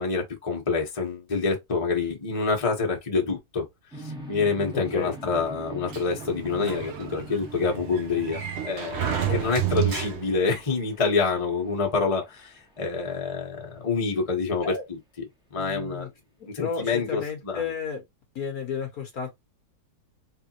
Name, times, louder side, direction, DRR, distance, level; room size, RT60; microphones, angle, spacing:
voice 1, 0.0-3.6 4.0-15.0 15.5-16.1 16.5-17.7, left 4 dB, 20° left, 1.1 m, -27 dB
sound 1, 3.9-12.8, right 1 dB, 5° right, 1.1 m, -43 dB
voice 2, 4.7-5.1 9.3-9.4 14.6-14.8 15.6-16.1 16.6-18.0 18.3-19.3, left 6 dB, 55° left, 1.4 m, -32 dB
Sliding door, 5.9-10.6, right 11 dB, 65° right, 0.6 m, -31 dB
3.6 x 3.4 x 2.9 m
omnidirectional pair, 2.0 m